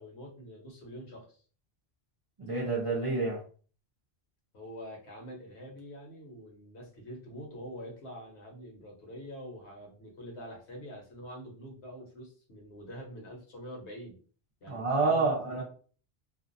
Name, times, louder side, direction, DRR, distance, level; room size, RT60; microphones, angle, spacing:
voice 1, 0.0-1.4 4.5-14.2 14.6-15.6, equal, 70° left, -1 dB, 1.2 m, -45 dB
voice 2, 2.4-3.4 14.7-15.6, right 3 dB, 40° right, -3 dB, 0.5 m, -28 dB
2.5 x 2.3 x 2.5 m, 0.41 s
omnidirectional pair, 1.1 m